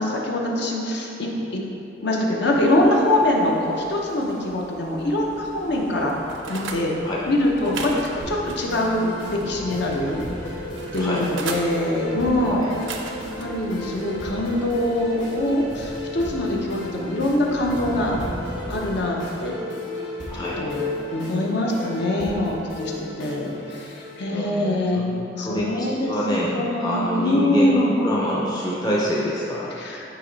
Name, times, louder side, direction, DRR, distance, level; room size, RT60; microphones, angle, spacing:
voice 1, 0.0-1.6 2.0-6.2 6.5-6.9 7.2-10.2 10.9-12.6 13.4-18.2 18.7-19.5 20.3-27.9 29.8-30.0, left 1 dB, 65° left, -1 dB, 0.8 m, -24 dB
sound 1, 2.5-19.0, equal, 40° left, 1.1 m, -41 dB
sound 2, 5.8-6.8 7.5-9.5 9.9-11.7 12.6-13.5 14.0-14.2, right 4 dB, 75° right, 0.5 m, -36 dB
sound 3, 8.2-24.2, left 1 dB, 80° left, 1.2 m, -34 dB
voice 2, 11.0-11.3 12.5-12.7 20.3-20.6 24.3-25.1 25.4-29.7, equal, 20° left, -6 dB, 0.6 m, -26 dB
8.7 x 2.9 x 4.0 m, 2.8 s
head